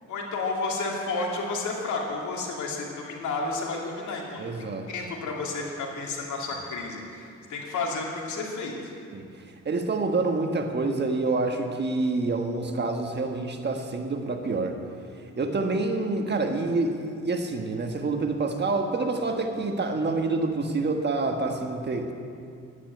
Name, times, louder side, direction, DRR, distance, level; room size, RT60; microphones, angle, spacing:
voice 1, 0.1-8.9, left 3 dB, 75° left, -1 dB, 2.6 m, -31 dB
voice 2, 4.4-4.9 9.1-9.3 9.6-14.8 15.4-22.1, right 3 dB, 35° right, 4 dB, 1.4 m, -27 dB
11.0 x 10.0 x 8.1 m, 2.4 s
cardioid pair, 90°, 30 cm